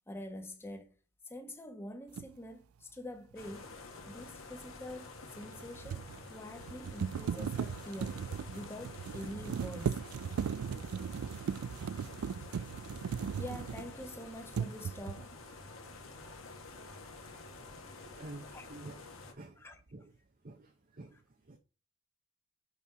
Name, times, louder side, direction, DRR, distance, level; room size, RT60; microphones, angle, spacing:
voice 1, 0.1-1.0 1.2-3.8 4.1-6.0 6.3-10.0 13.4-15.3 18.5-18.7 19.6-19.8 21.1-21.2, left 1 dB, 10° left, 1.1 m, -46 dB
sound 1, 2.2-2.3 5.4-14.1 14.5-15.3, right 7 dB, 80° right, 0.4 m, -38 dB
sound 2, 3.4-19.3, left 3 dB, 70° left, 1.7 m, -49 dB
voice 2, 18.2-19.0 19.3-19.5 19.9-20.1 20.4-21.2 21.5-21.6, right 2 dB, 40° right, 0.8 m, -48 dB
6.9 x 5.5 x 4.8 m
head